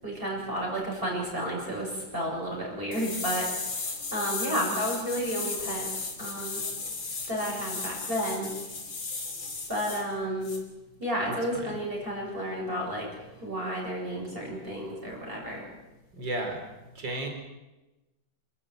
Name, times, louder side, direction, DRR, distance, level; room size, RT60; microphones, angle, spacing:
voice 1, 0.0-3.5 4.1-5.9 6.2-6.6 7.3-8.5 9.7-10.5 11.0-13.1 13.4-15.7, equal, 25° right, -3 dB, 7.4 m, -31 dB
sound 1, 2.9-10.0 10.4-10.6, left 4 dB, 85° left, 4.0 m, -35 dB
voice 2, 11.3-11.8 16.1-16.6 16.9-17.3, right 2 dB, 65° right, 4 dB, 4.7 m, -34 dB
28.5 x 14.0 x 9.2 m, 1.0 s
omnidirectional pair, 2.1 m